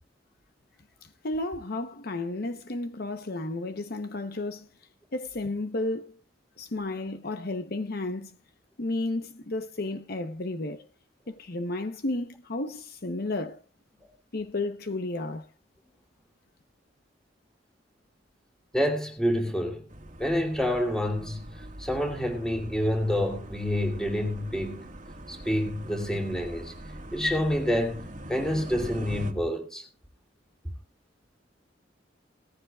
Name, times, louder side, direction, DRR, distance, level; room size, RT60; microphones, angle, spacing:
voice 1, 1.2-4.7 5.1-6.2 6.6-8.3 8.8-10.8 11.3-13.6 14.3-15.5, left 2 dB, 55° left, 0.9 m, -32 dB
voice 2, 18.7-19.8 20.2-24.8 25.3-26.7 27.1-29.8, equal, 5° left, 2.8 m, -28 dB
sound 1, 19.9-29.3, right 1 dB, 45° right, 1.7 m, -42 dB
17.5 x 15.0 x 2.4 m
head